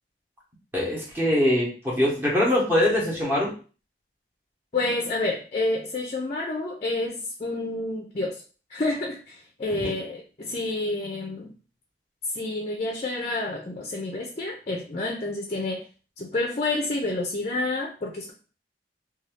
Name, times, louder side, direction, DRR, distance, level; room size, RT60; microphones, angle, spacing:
voice 1, 0.7-3.5 9.7-9.9, left 1 dB, 10° right, -4 dB, 0.8 m, -23 dB
voice 2, 4.7-8.4 8.7-11.5 12.4-15.8 16.2-18.3, left 2 dB, 35° left, 1 dB, 0.5 m, -29 dB
2.6 x 2.3 x 3.2 m, 0.37 s
head